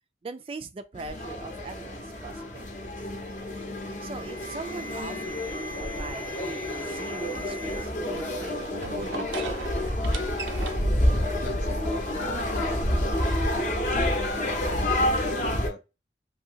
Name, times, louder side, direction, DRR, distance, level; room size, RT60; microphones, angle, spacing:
voice 1, 0.2-3.1 4.0-9.8, right 3 dB, 30° right, 0.3 m, -41 dB
sound 1, 1.0-15.7, left 1 dB, 45° left, 0.7 m, -28 dB
Alarm, 3.9-7.8 8.2-8.6 9.4-9.5 10.1-10.4 12.2-12.4 14.2-14.5, left 1 dB, 10° left, 0.7 m, -42 dB
sound 2, 7.6-15.2, right 5 dB, 90° right, 0.5 m, -43 dB
voice 2, 11.1-13.1 13.9-15.8, left 3 dB, 80° left, 0.5 m, -42 dB
2.7 x 2.6 x 2.8 m
head